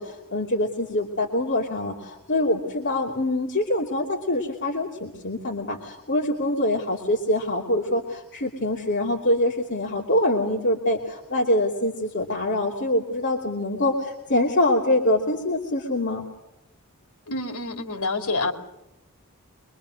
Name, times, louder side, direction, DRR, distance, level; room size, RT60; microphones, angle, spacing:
voice 1, 0.0-16.2, left 1 dB, 55° left, -1 dB, 2.9 m, -24 dB
voice 2, 17.3-18.5, left 3 dB, 90° left, 6 dB, 3.0 m, -27 dB
24.5 x 23.5 x 6.5 m, 0.91 s
head